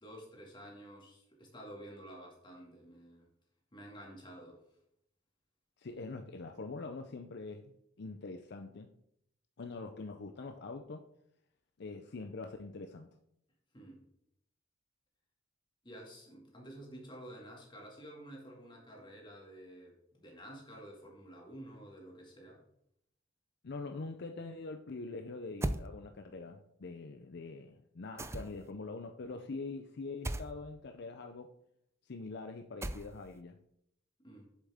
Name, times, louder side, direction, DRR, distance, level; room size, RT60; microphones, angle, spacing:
voice 1, 0.0-3.3 3.7-4.6 13.7-14.0 15.8-22.6 34.2-34.5, right 1 dB, 25° left, -1 dB, 2.1 m, -51 dB
voice 2, 5.8-8.9 9.6-11.1 11.8-13.2 23.6-31.5 32.1-33.6, left 3 dB, 60° left, 6 dB, 0.5 m, -44 dB
sound 1, 25.6-25.9 28.2-28.7 30.2-30.5 32.8-33.3, right 1 dB, 15° right, 0.4 m, -36 dB
7.5 x 7.3 x 3.5 m, 0.75 s
head